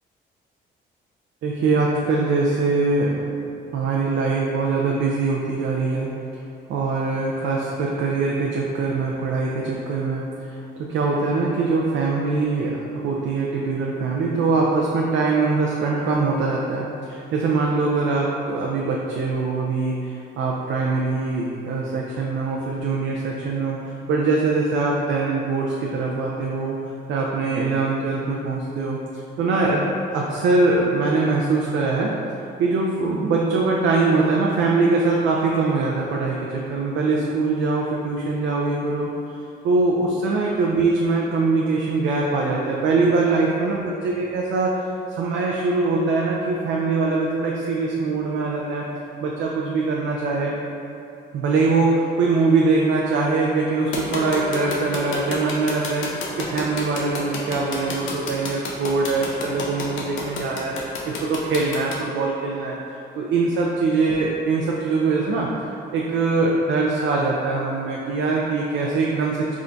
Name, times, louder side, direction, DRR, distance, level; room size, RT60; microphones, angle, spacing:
voice 1, 1.4-3.5 3.7-6.1 6.7-29.0 29.4-32.1 32.6-48.9 49.2-50.6 51.3-62.8 63.1-65.5 65.9-69.5, right 3 dB, 70° right, -2 dB, 0.4 m, -22 dB
sound 1, 53.9-62.0, left 4 dB, 80° left, 0.6 m, -29 dB
3.6 x 2.2 x 3.8 m, 2.7 s
cardioid pair, 90°, 20 cm